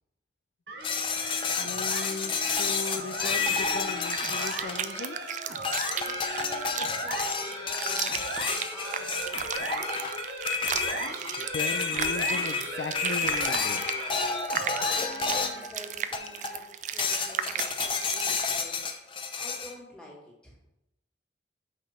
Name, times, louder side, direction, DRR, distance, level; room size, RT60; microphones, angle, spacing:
sound 1, 0.7-15.8, right 2 dB, 65° right, 1.2 m, -38 dB
sound 2, 0.8-5.2 5.6-15.7 16.1-16.6 17.0-19.7, left 5 dB, 30° left, 0.6 m, -30 dB
voice 1, 1.6-5.2 11.4-13.9, left 4 dB, 80° left, 0.5 m, -37 dB
sound 3, 4.0-18.4, right 8 dB, 45° right, 0.4 m, -35 dB
voice 2, 6.0-10.1 15.0-18.8 19.3-20.6, equal, 5° left, 2.1 m, -48 dB
5.9 x 5.1 x 5.6 m
head